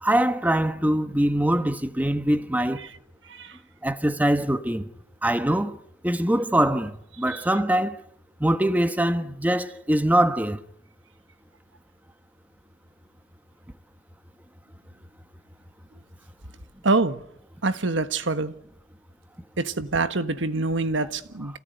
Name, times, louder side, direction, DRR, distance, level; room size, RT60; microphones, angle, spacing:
voice 1, 0.0-2.8 3.8-4.9 5.2-5.8 6.0-8.0 8.4-10.6, right 1 dB, 10° right, 1.2 m, -23 dB
voice 2, 3.3-3.6 7.3-7.4 16.8-17.2 17.6-18.5 19.6-21.6, right 3 dB, 75° right, 1.5 m, -25 dB
28.0 x 18.0 x 9.2 m
head